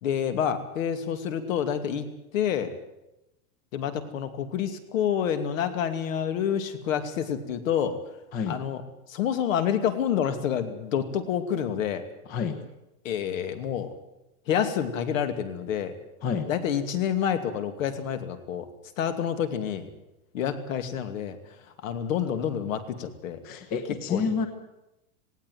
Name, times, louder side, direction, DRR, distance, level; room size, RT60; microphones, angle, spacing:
voice 1, 0.0-2.1 2.3-2.8 3.7-8.0 8.5-8.8 9.1-12.0 13.0-13.9 14.5-15.9 16.5-18.7 19.0-19.9 20.3-21.4 21.8-23.4 23.9-24.3, left 8 dB, 65° left, 9 dB, 2.6 m, -28 dB
voice 2, 23.4-24.5, left 6 dB, 20° left, 9 dB, 1.1 m, -28 dB
18.5 x 17.5 x 9.5 m, 0.92 s
supercardioid pair, 180°, 42 cm